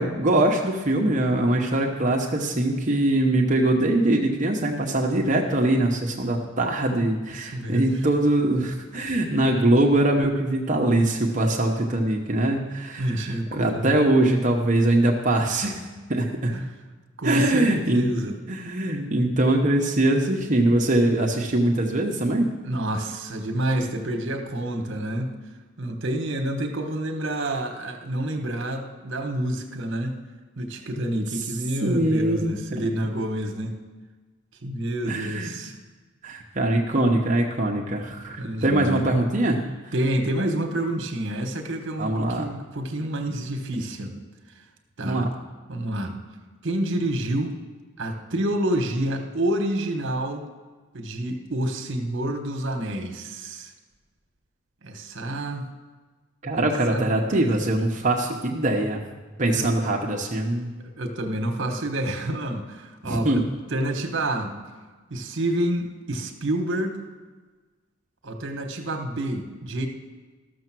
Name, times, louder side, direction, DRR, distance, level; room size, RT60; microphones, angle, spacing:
voice 1, 0.0-13.2 13.5-15.8 16.1-16.6 17.2-18.1 18.5-22.5 31.8-32.5 32.8-32.9 35.1-35.5 36.2-39.6 42.0-42.5 45.0-45.3 56.4-59.0 59.4-60.7 63.0-63.4, right 1 dB, 40° right, 0 dB, 0.9 m, -22 dB
voice 2, 7.3-7.8 13.0-13.9 16.5-16.7 17.2-18.4 22.6-25.3 25.8-30.2 30.6-33.7 34.6-35.7 38.4-39.0 39.9-44.1 45.0-45.3 45.7-46.1 46.6-47.5 48.0-50.5 50.9-53.7 54.8-55.7 56.6-57.4 59.5-59.7 60.8-64.5 65.1-67.0 68.2-69.9, right 1 dB, 65° right, 5 dB, 1.3 m, -28 dB
13.0 x 6.7 x 6.1 m, 1.3 s
head